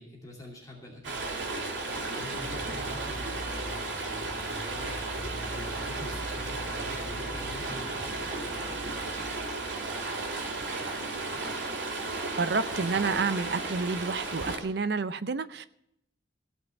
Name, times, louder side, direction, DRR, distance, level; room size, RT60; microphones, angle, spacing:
voice 1, 0.0-5.0 5.6-9.3 9.6-11.4, left 1 dB, 20° left, -2 dB, 2.6 m, -47 dB
Stream, 1.0-14.6, right 3 dB, 80° right, 2.3 m, -34 dB
sound 1, 2.3-9.5, equal, 5° right, 2.3 m, -42 dB
voice 2, 12.4-15.7, right 4 dB, 60° right, 14 dB, 0.6 m, -29 dB
16.0 x 5.4 x 9.0 m, 0.76 s
head